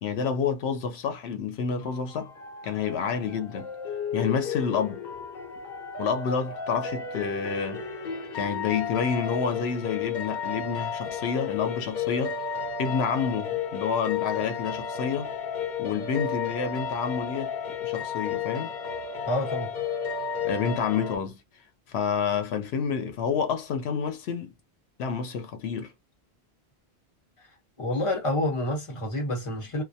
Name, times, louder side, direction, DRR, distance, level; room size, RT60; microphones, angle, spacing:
voice 1, 0.0-2.3 2.6-3.7 4.1-5.0 6.0-7.8 8.3-12.4 12.8-15.3 15.8-17.5 17.8-18.7 20.4-21.4 21.9-24.5 25.0-25.9, left 6 dB, 90° left, 0.9 m, -29 dB
sound 1, 1.8-21.2, left 6 dB, 50° left, 0.8 m, -33 dB
voice 2, 19.2-19.7 27.8-29.8, left 1 dB, 30° left, 1.1 m, -28 dB
2.2 x 2.1 x 2.6 m
omnidirectional pair, 1.0 m